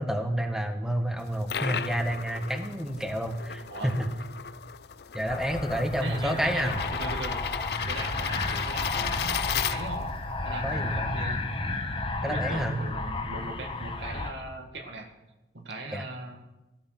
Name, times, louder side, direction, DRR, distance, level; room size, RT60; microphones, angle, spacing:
voice 1, 0.0-4.1 5.1-6.8 10.6-11.2 12.2-12.8 15.9-16.0, equal, 5° right, 5 dB, 1.4 m, -29 dB
sound 1, 1.2-10.2, left 8 dB, 60° left, 0.6 m, -35 dB
sound 2, 5.3-14.3, left 2 dB, 30° left, 1.2 m, -32 dB
voice 2, 6.0-7.4 7.9-9.4 9.7-10.1 10.5-11.4 12.2-15.1 15.5-16.4, right 2 dB, 80° right, 2 dB, 2.0 m, -38 dB
18.5 x 13.0 x 5.9 m, 1.0 s
head